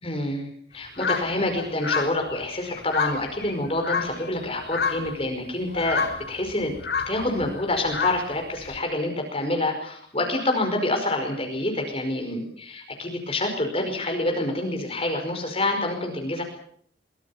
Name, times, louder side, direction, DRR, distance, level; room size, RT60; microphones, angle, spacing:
voice 1, 0.0-6.7 7.1-16.4, left 1 dB, 30° left, 3 dB, 5.2 m, -27 dB
sound 1, 1.0-4.4 4.7-5.3 5.6-8.8, left 5 dB, 60° left, 3.1 m, -30 dB
24.0 x 21.5 x 7.2 m, 0.62 s
head